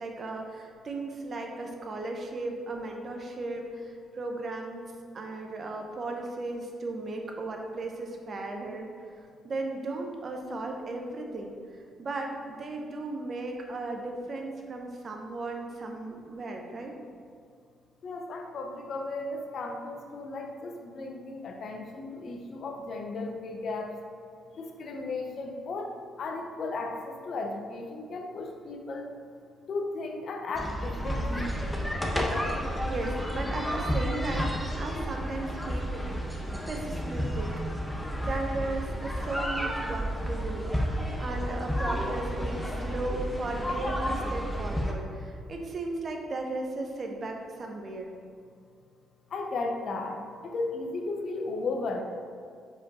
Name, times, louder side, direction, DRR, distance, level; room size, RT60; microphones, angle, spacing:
voice 1, 0.0-4.8 5.1-8.9 9.4-16.9 32.8-36.2 36.7-37.5 38.2-48.1, right 2 dB, 45° right, 2 dB, 0.9 m, -36 dB
voice 2, 18.0-23.9 24.5-25.9 26.2-29.1 29.7-31.5 49.3-50.2 50.4-52.0, left 3 dB, 55° left, 3 dB, 0.8 m, -35 dB
sound 1, 30.5-44.9, equal, 5° left, 0.8 m, -31 dB
5.0 x 4.9 x 4.2 m, 2.3 s
cardioid pair, 90°, 0 cm